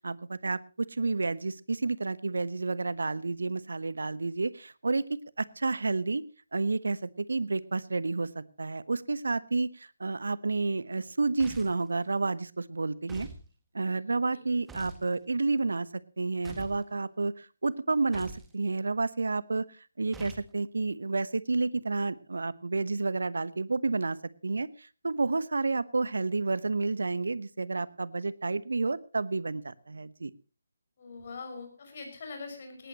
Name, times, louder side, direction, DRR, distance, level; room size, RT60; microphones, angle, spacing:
voice 1, 0.0-6.2 6.5-13.3 13.7-19.7 20.0-24.2 24.4-30.3, right 3 dB, 65° right, 18 dB, 1.0 m, -30 dB
sound 1, 11.4-11.9 13.1-13.4 14.7-15.1 16.4-16.8 18.1-18.5 20.1-20.5, right 3 dB, 5° right, 1.8 m, -45 dB
voice 2, 31.0-32.9, left 4 dB, 40° left, 5 dB, 6.0 m, -42 dB
19.5 x 18.5 x 2.9 m, 0.34 s
figure-of-eight pair, 150°, 0 cm